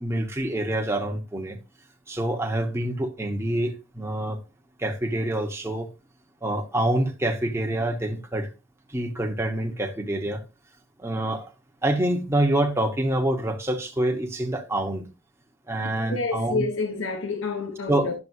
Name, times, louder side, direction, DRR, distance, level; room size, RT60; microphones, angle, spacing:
voice 1, 0.0-1.6 2.1-4.4 4.8-5.9 6.4-8.5 8.9-10.4 11.0-11.5 11.8-15.1 15.7-16.7 17.9-18.1, right 1 dB, 15° right, 1.0 m, -26 dB
voice 2, 16.0-18.1, left 3 dB, 75° left, 1.1 m, -28 dB
11.0 x 6.8 x 2.7 m
head